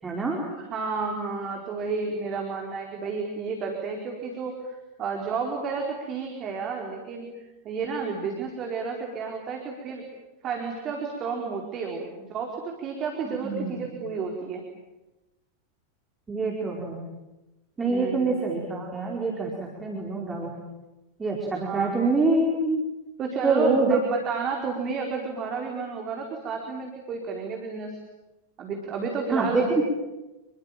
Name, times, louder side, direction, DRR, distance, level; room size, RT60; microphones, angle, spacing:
voice 1, 0.0-0.4 13.3-13.8 16.3-17.0 17.8-20.5 21.2-22.8 23.4-24.0 29.3-29.8, right 3 dB, 15° right, -1 dB, 4.9 m, -25 dB
voice 2, 0.6-7.3 7.6-10.0 10.4-14.6 17.8-18.4 21.6-21.9 23.2-28.0 28.6-29.6, right 5 dB, 30° right, 1 dB, 4.6 m, -31 dB
28.0 x 22.5 x 9.2 m, 1.0 s
figure-of-eight pair, 90°, 0 cm